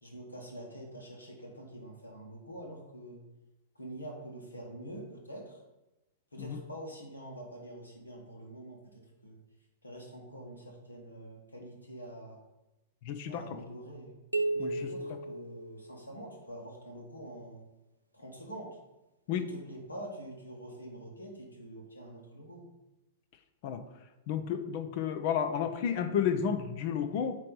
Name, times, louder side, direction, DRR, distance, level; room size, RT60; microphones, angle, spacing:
voice 1, 0.0-3.2 3.8-5.6 6.3-9.4 9.8-12.4 13.3-14.1 14.5-17.7 18.1-18.8 19.3-22.7, right 1 dB, 80° left, 0 dB, 1.9 m, -46 dB
voice 2, 13.1-13.4 14.6-14.7 19.3-19.4 23.6-23.8 24.3-27.4, left 8 dB, 45° left, 9 dB, 0.7 m, -31 dB
sound 1, 14.3-16.3, right 2 dB, 85° right, 0.6 m, -34 dB
8.6 x 3.2 x 5.5 m, 0.98 s
figure-of-eight pair, 100°, 0 cm